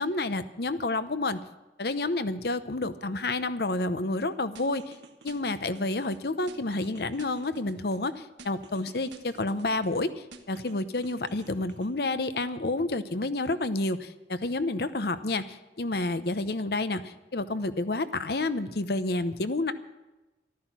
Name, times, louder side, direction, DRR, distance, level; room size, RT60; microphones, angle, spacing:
voice 1, 0.0-1.4 1.8-4.9 5.2-10.1 10.5-19.7, left 2 dB, 60° left, 12 dB, 0.8 m, -29 dB
sound 1, 4.6-6.2 6.5-8.1 8.4-10.0 10.3-11.9, right 3 dB, 80° right, 1.5 m, -50 dB
14.0 x 13.0 x 6.1 m, 1.0 s
head